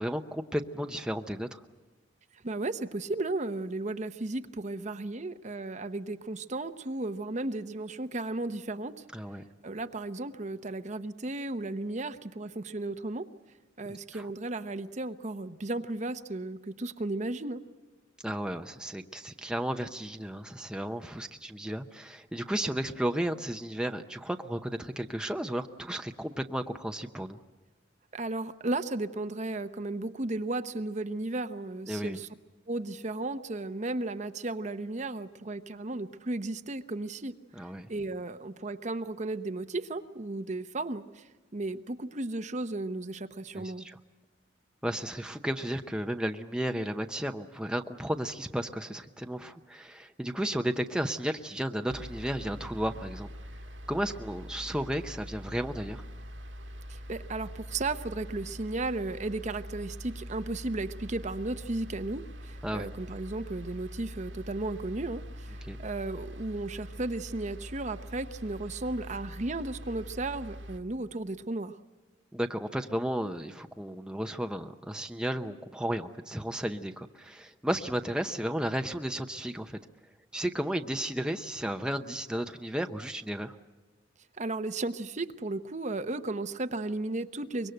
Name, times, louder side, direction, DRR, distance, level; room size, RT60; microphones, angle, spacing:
voice 1, 0.0-1.6 9.1-9.4 13.9-14.3 18.2-27.4 31.9-32.2 37.6-37.9 43.5-44.0 44.8-53.3 53.9-56.0 62.6-62.9 65.7-65.8 72.3-79.8 80.3-83.6, right 1 dB, 5° right, 5 dB, 0.7 m, -33 dB
voice 2, 2.4-9.0 9.6-13.2 13.8-17.6 28.1-32.3 32.7-37.3 37.9-41.2 41.5-43.9 56.9-71.8 84.4-87.7, right 2 dB, 40° right, 10 dB, 0.8 m, -34 dB
sound 1, 51.9-70.8, equal, 80° right, 1.9 m, -43 dB
24.5 x 23.0 x 7.9 m, 1.3 s
head